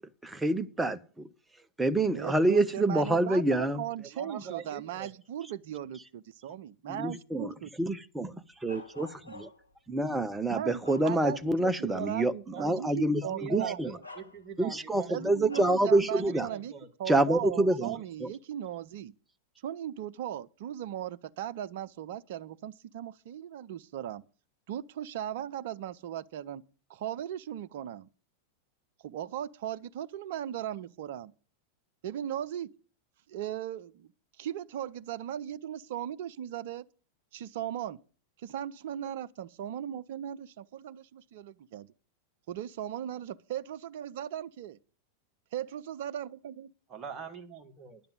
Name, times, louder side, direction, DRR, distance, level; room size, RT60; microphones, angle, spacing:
voice 1, 0.2-1.3 1.8-3.8 6.9-7.5 7.8-9.5 9.9-13.9 14.6-16.5 17.1-18.3, right 2 dB, 10° right, 0.7 m, -27 dB
voice 2, 2.1-7.7 10.5-13.8 15.1-16.7 17.0-19.1 19.6-24.2 24.7-26.6 26.9-28.1 29.0-31.3 32.0-32.7 33.3-34.1 34.4-36.9 37.3-38.0 38.4-41.9 42.5-44.8 45.5-46.7, right 11 dB, 55° right, 0.6 m, -38 dB
voice 3, 4.0-5.1 11.4-12.8 13.2-15.1 15.4-15.7 16.2-16.9 17.9-18.0 46.9-48.0, right 7 dB, 25° right, 1.8 m, -43 dB
Bark, 8.7-9.7 10.3-11.6 12.0-12.2 13.3-13.4 14.0-14.8 15.5-15.9, left 2 dB, 85° left, 1.1 m, -49 dB
10.5 x 6.9 x 7.7 m
figure-of-eight pair, 90°, 0 cm